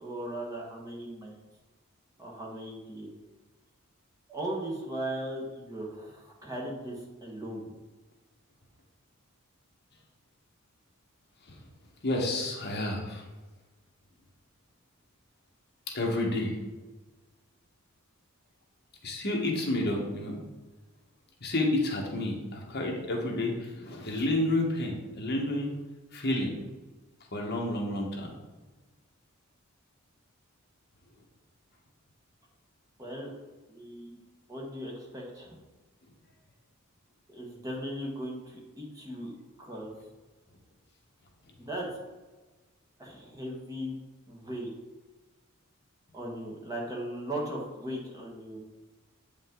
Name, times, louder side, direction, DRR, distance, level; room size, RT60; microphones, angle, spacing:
voice 1, 0.0-1.4 2.2-3.1 4.3-7.8 33.0-33.3 33.7-34.2 34.5-35.5 37.3-39.9 41.6-41.9 43.0-43.9 44.3-44.7 46.1-48.6, right 1 dB, 15° right, -2 dB, 1.3 m, -38 dB
voice 2, 12.0-13.2 15.9-16.5 19.0-20.3 21.4-25.7 26.1-26.5 27.3-28.3, left 1 dB, 50° left, -1 dB, 1.4 m, -30 dB
8.3 x 5.2 x 3.8 m, 1.2 s
head